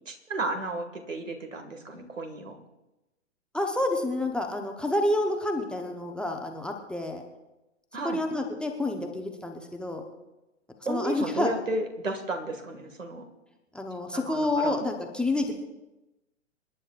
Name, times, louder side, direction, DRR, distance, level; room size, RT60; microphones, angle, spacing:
voice 1, 0.1-2.6 7.9-8.2 10.9-13.2 14.1-14.8, right 2 dB, 85° right, 6 dB, 2.1 m, -33 dB
voice 2, 3.5-7.2 8.0-10.0 10.9-11.5 13.7-15.5, left 2 dB, ahead, 1 dB, 0.8 m, -29 dB
27.0 x 10.0 x 2.5 m, 1.0 s
figure-of-eight pair, 120°, 38 cm